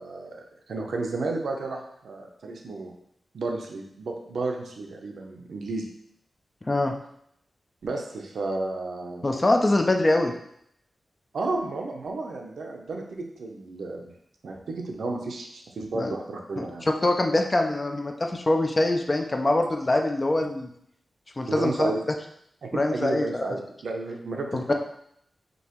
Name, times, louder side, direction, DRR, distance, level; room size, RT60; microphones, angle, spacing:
voice 1, 0.0-2.9 3.3-5.9 7.8-9.2 11.3-14.1 14.4-16.9 21.5-22.1 22.6-24.7, right 3 dB, 75° right, 2 dB, 0.6 m, -32 dB
voice 2, 9.2-10.3 15.9-16.2 16.6-16.7 17.0-20.7 21.4-21.9 22.7-23.3 24.5-24.7, left 2 dB, 20° left, 3 dB, 0.4 m, -23 dB
5.2 x 2.8 x 3.0 m, 0.71 s
wide cardioid pair, 175°, 0 cm